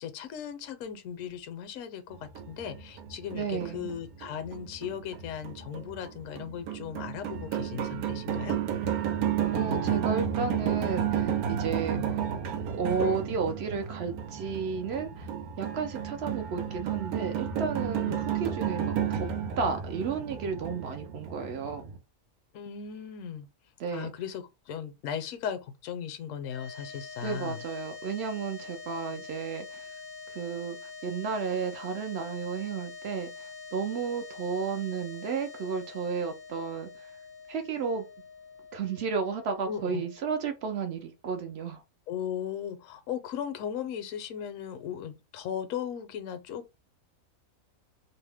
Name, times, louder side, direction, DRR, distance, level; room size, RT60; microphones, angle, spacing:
voice 1, 0.0-8.6 11.9-12.1 17.9-18.2 22.5-23.5 23.9-27.6 39.7-40.0 42.1-46.7, left 8 dB, 70° left, 0.9 m, -37 dB
sound 1, 2.1-22.0, right 9 dB, 90° right, 1.1 m, -32 dB
voice 2, 3.3-3.9 9.5-12.2 12.7-15.3 15.6-19.3 19.6-21.8 23.8-24.1 27.2-29.9 30.3-37.1 37.5-38.1 38.7-41.8, right 5 dB, 65° right, 0.6 m, -33 dB
sound 2, 26.4-40.9, left 4 dB, 45° left, 0.6 m, -45 dB
2.7 x 2.0 x 3.3 m
omnidirectional pair, 1.5 m